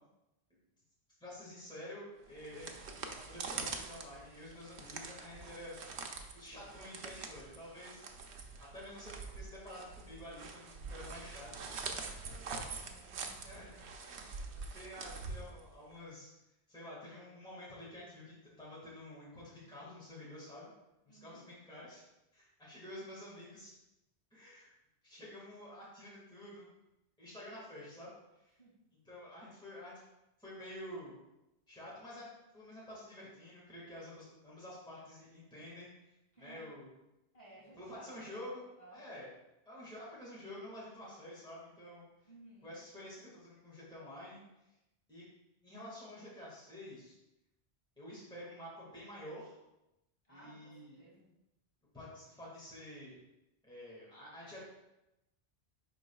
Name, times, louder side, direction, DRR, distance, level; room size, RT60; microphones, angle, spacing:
voice 1, 1.2-2.8 3.0-5.7 6.3-8.0 8.6-11.5 13.4-14.2 14.7-16.3 16.7-20.7 21.1-22.0 22.3-23.8 24.3-24.7 25.0-26.7 27.2-28.1 28.4-28.6 29.0-30.0 30.4-31.2 31.7-36.9 37.8-38.6 38.9-39.3 39.7-42.0 42.6-44.4 45.1-45.2 45.6-47.2 48.0-49.6 50.3-51.0 51.9-53.2 53.6-54.6, left 1 dB, 5° left, -7 dB, 1.7 m, -49 dB
sound 1, 2.3-16.0, right 4 dB, 85° right, 0.9 m, -45 dB
voice 2, 11.4-13.5 21.1-21.4 28.6-28.7 36.3-36.7 37.3-38.3 38.8-39.0 42.2-42.7 50.2-51.3, right 1 dB, 35° left, -6 dB, 2.3 m, -58 dB
10.5 x 3.9 x 2.3 m, 0.93 s
omnidirectional pair, 1.1 m